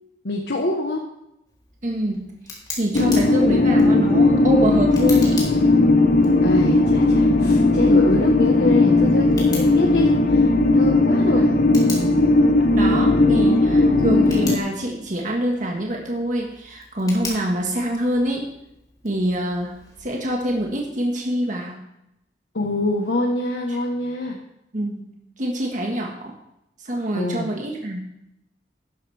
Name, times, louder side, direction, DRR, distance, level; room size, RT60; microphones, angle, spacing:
voice 1, 0.2-1.0 6.4-11.5 22.5-24.4 27.1-27.5, left 2 dB, 70° left, -1 dB, 1.3 m, -25 dB
Tick, 1.5-21.1, left 3 dB, 25° left, 3.4 m, -41 dB
voice 2, 1.8-2.3 2.8-5.4 12.8-18.5 19.0-19.7 20.0-21.8 23.7-23.8 24.7-26.3 26.8-28.0, right 1 dB, 45° right, 0 dB, 1.7 m, -25 dB
sound 1, 2.9-14.6, left 2 dB, 50° left, 1.0 m, -17 dB
13.5 x 11.0 x 3.5 m, 0.82 s
head